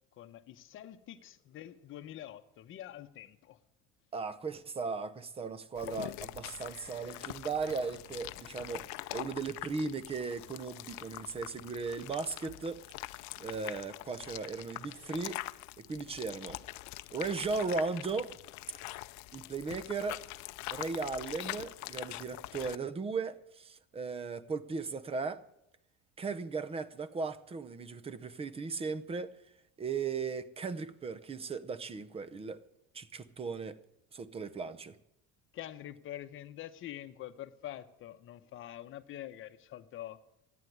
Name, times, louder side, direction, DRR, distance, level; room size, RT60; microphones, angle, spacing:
voice 1, 0.1-3.6 35.5-40.2, left 12 dB, 40° left, 1.0 m, -46 dB
voice 2, 4.1-8.8 9.1-12.8 13.1-15.4 15.8-16.6 17.1-18.3 19.3-20.2 20.7-25.4 26.2-29.3 29.8-32.6 32.9-33.8 34.1-35.0, right 4 dB, 20° right, 0.7 m, -37 dB
sound 1, 5.8-22.8, left 19 dB, 60° left, 0.6 m, -44 dB
14.0 x 9.5 x 9.4 m
cardioid pair, 160°, 32 cm